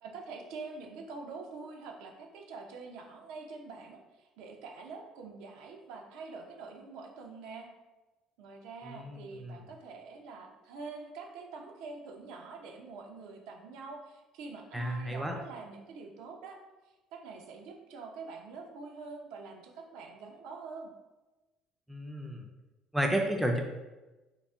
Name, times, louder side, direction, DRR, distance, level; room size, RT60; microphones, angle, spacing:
voice 1, 0.0-7.7 8.4-16.6 17.1-20.9, right 4 dB, 80° right, 2 dB, 0.6 m, -45 dB
voice 2, 8.9-9.6 14.7-15.3 21.9-22.5 22.9-23.6, right 1 dB, 5° right, 2 dB, 0.3 m, -32 dB
3.9 x 2.1 x 3.5 m, 1.1 s
cardioid pair, 155°, 0 cm